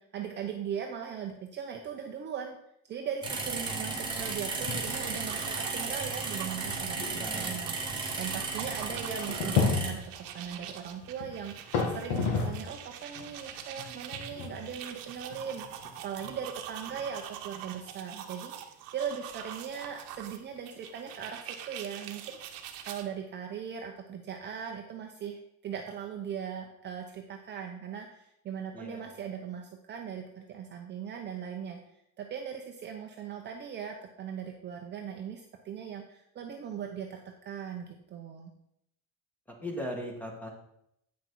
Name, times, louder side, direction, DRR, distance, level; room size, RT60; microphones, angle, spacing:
voice 1, 0.0-2.6 2.9-10.0 10.3-22.4 22.8-31.8 32.2-38.5, right 7 dB, 30° right, 2 dB, 0.7 m, -39 dB
sound 1, 3.2-9.9, right 3 dB, 15° right, 1.5 m, -35 dB
voice 2, 3.7-4.3 7.1-7.7 28.7-29.1 39.6-40.5, equal, 5° left, 1 dB, 1.3 m, -40 dB
sound 2, 4.5-5.0 5.3-5.4 6.1-6.2 6.7-12.8 13.1-17.4, left 5 dB, 70° left, 1.7 m, -34 dB
sound 3, 4.7-23.0, right 10 dB, 65° right, 1.0 m, -44 dB
8.4 x 5.9 x 4.5 m, 0.76 s
cardioid pair, 155°, 37 cm